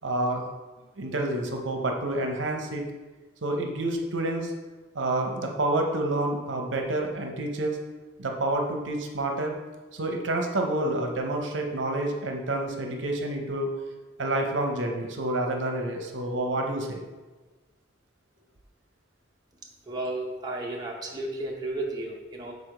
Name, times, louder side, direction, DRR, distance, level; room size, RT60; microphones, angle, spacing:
voice 1, 0.0-0.5 1.0-2.8 3.4-4.5 4.9-7.8 8.2-9.6 9.9-13.7 14.2-17.0, right 1 dB, 70° right, 2 dB, 0.7 m, -28 dB
voice 2, 19.9-22.5, right 2 dB, 20° right, -2 dB, 0.7 m, -33 dB
4.9 x 4.1 x 4.9 m, 1.2 s
head